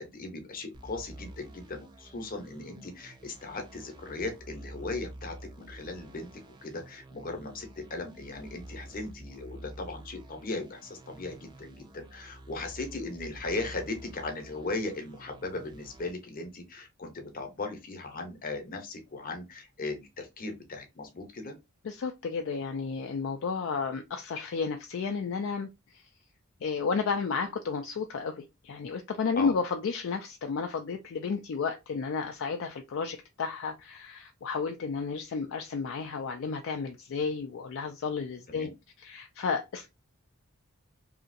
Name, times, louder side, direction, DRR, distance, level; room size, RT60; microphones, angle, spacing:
voice 1, 0.0-6.3 6.6-21.6 29.4-29.5 38.5-38.7, left 3 dB, 40° left, 0.8 m, -38 dB
sound 1, 0.7-16.1, right 1 dB, 20° right, 0.5 m, -49 dB
voice 2, 21.8-26.1 26.6-38.7 39.0-39.9, left 5 dB, 60° left, 0.4 m, -32 dB
2.8 x 2.5 x 2.6 m
head